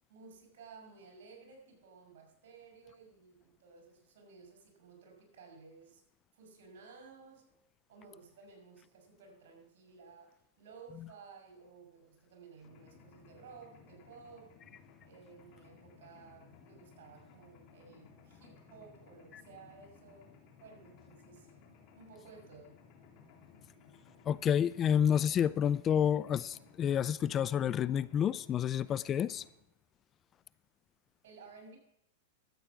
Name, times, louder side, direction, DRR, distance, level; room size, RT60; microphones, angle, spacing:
voice 1, 0.1-6.0 6.3-7.5 7.9-14.5 15.0-20.3 20.6-21.6 22.0-22.8 31.2-31.8, right 5 dB, 70° right, 5.7 m, -55 dB
Mechanisms, 12.6-29.5, left 5 dB, 45° left, 2.7 m, -59 dB
voice 2, 24.3-29.4, left 9 dB, 30° left, 0.4 m, -29 dB
13.0 x 8.2 x 6.2 m
hypercardioid pair, 120°, 0 cm